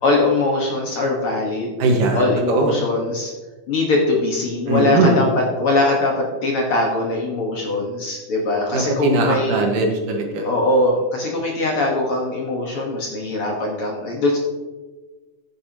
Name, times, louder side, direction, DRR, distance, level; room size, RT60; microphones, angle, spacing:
voice 1, 0.0-1.7 2.1-3.3 3.7-9.6 10.4-14.4, left 2 dB, 50° left, -1 dB, 1.9 m, -21 dB
voice 2, 1.8-2.7 4.7-5.2 8.7-10.5, right 2 dB, 80° right, 2 dB, 3.0 m, -20 dB
15.5 x 8.7 x 2.9 m, 1.3 s
omnidirectional pair, 3.7 m